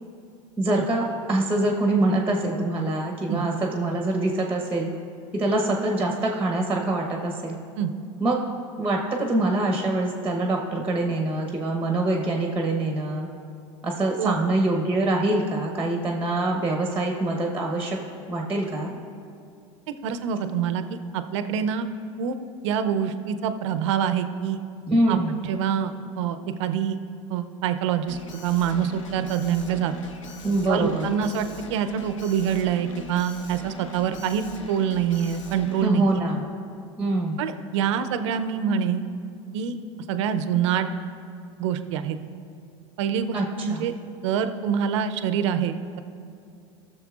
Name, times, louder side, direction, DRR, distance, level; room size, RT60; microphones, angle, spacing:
voice 1, 0.6-4.9 5.3-7.6 8.2-8.4 8.8-13.3 13.8-18.0 18.3-19.0 24.9-25.4 30.4-31.1 35.8-36.5 37.0-37.4 43.3-43.9, right 2 dB, 10° right, 1 dB, 0.9 m, -24 dB
voice 2, 20.0-20.8 21.1-21.9 22.2-22.4 22.6-24.6 25.1-27.0 27.3-29.9 30.7-36.0 37.4-39.0 39.5-39.8 40.1-40.9 41.6-42.2 43.0-43.9 44.2-46.0, right 8 dB, 70° right, 9 dB, 0.6 m, -25 dB
Alarm, 28.1-35.9, left 4 dB, 85° left, 0.8 m, -42 dB
16.5 x 6.8 x 2.4 m, 2.5 s
hypercardioid pair, 95°, 16 cm